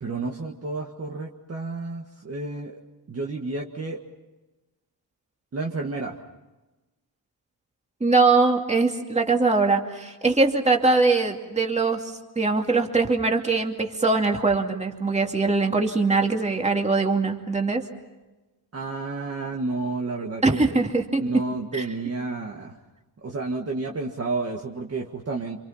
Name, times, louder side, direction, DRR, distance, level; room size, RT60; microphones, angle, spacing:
voice 1, 0.0-2.8 3.1-4.0 5.5-6.2 18.7-20.7 21.2-22.8 23.2-25.6, right 3 dB, 35° right, 0 dB, 1.8 m, -31 dB
voice 2, 8.0-12.0 12.4-17.8 20.4-21.2 21.7-21.9, right 3 dB, 15° right, 3 dB, 2.5 m, -22 dB
28.5 x 27.0 x 5.7 m, 1.1 s
wide cardioid pair, 155°, 41 cm